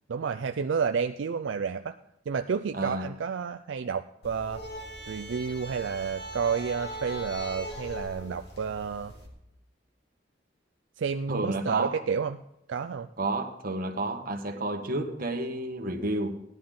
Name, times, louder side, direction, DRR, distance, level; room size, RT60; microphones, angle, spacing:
voice 1, 0.1-2.0 2.3-4.6 5.1-9.1 11.0-12.4 12.7-13.1, right 6 dB, 75° right, 8 dB, 0.4 m, -30 dB
voice 2, 2.7-3.1 11.3-12.0 13.2-16.4, right 2 dB, 50° right, 4 dB, 1.4 m, -31 dB
sound 1, 4.2-9.3, equal, 65° left, 2.8 m, -40 dB
17.0 x 10.5 x 3.8 m, 0.79 s
head